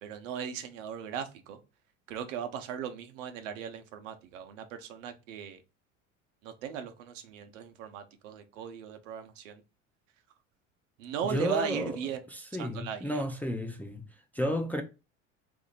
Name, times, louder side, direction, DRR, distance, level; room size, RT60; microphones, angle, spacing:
voice 1, 0.0-1.6 2.1-5.6 6.4-9.6 11.0-12.2 12.5-13.2, right 7 dB, 75° right, 0.7 m, -38 dB
voice 2, 11.3-12.0 12.3-14.0 14.3-14.8, equal, 5° left, 0.4 m, -32 dB
2.8 x 2.6 x 4.0 m
hypercardioid pair, 70°, 38 cm